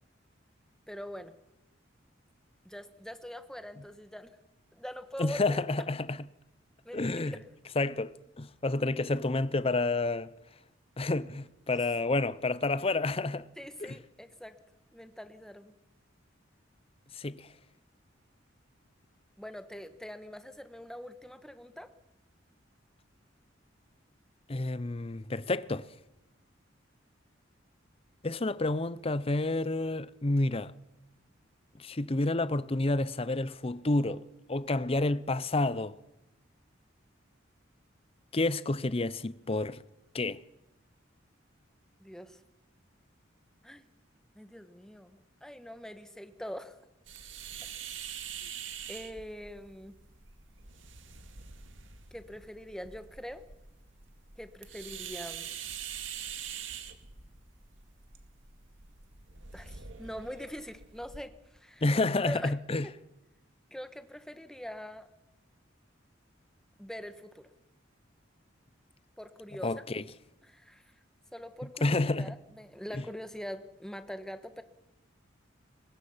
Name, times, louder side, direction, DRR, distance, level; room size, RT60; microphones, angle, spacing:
voice 1, 0.9-1.3 2.6-4.3 4.7-5.6 6.8-7.4 11.7-11.9 13.6-14.6 14.9-15.7 19.4-21.9 42.0-42.4 43.6-43.8 44.3-46.8 48.4-48.5 48.9-49.9 52.1-53.5 54.4-55.5 59.5-61.8 62.2-62.6 62.8-62.9 63.7-65.1 66.8-67.4 69.2-69.8 70.4-70.8 71.3-74.6, equal, 5° left, 1.4 m, -43 dB
voice 2, 5.2-6.2 6.9-7.3 7.8-10.3 11.0-13.4 13.8-13.9 17.1-17.5 24.5-25.9 28.2-30.7 31.8-34.2 34.5-36.0 38.3-39.8 40.1-40.4 61.8-62.8 69.6-70.0 71.8-72.3 72.9-73.0, left 2 dB, 30° left, 0.7 m, -29 dB
sound 1, 47.1-61.2, right 8 dB, 75° right, 2.0 m, -44 dB
23.0 x 19.5 x 5.7 m
head